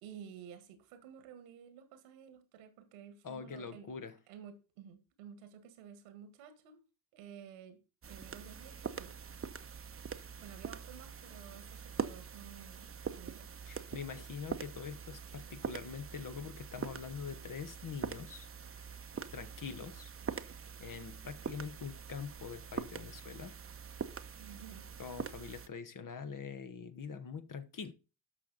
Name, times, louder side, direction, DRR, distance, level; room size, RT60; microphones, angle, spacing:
voice 1, 0.0-3.9 4.3-6.8 7.1-7.8 8.1-9.2 10.4-13.4 24.4-24.8, right 8 dB, 80° right, 1.8 m, -52 dB
voice 2, 3.2-4.2 13.7-18.5 18.8-19.0 19.3-20.1 20.5-20.6 20.8-23.6 25.0-27.9, left 6 dB, 40° left, 1.3 m, -44 dB
sound 1, 8.0-25.7, right 6 dB, 25° right, 1.0 m, -44 dB
12.5 x 5.9 x 4.1 m
hypercardioid pair, 45°, 49 cm